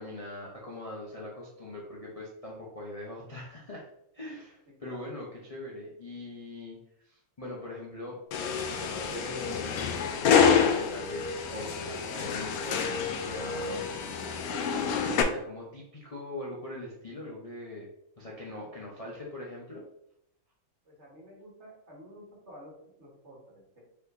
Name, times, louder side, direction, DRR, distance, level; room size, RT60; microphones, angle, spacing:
voice 1, 0.0-3.9 4.1-9.8 10.5-13.9 14.7-17.9 18.2-19.8, left 1 dB, 35° left, -4 dB, 0.5 m, -41 dB
sound 1, 8.3-15.2, left 6 dB, 75° left, 0.8 m, -27 dB
voice 2, 20.8-23.8, equal, 40° right, -4 dB, 1.6 m, -51 dB
4.5 x 4.4 x 2.7 m, 0.76 s
omnidirectional pair, 2.1 m